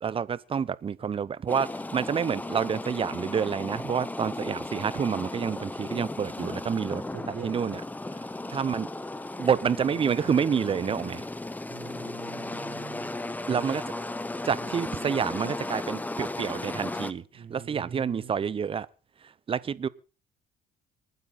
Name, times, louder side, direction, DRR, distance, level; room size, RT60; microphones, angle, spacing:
voice 1, 0.0-7.0 7.4-7.8 8.5-8.9 9.4-11.2 13.5-13.8 14.4-18.9 19.5-19.9, right 7 dB, 35° right, 0.8 m, -28 dB
sound 1, 1.5-17.1, left 2 dB, 10° left, 1.0 m, -36 dB
voice 2, 7.1-7.5 11.7-13.3 14.6-15.4 17.3-18.4, right 6 dB, 55° right, 3.8 m, -44 dB
27.5 x 9.3 x 4.2 m
cardioid pair, 110°, 17 cm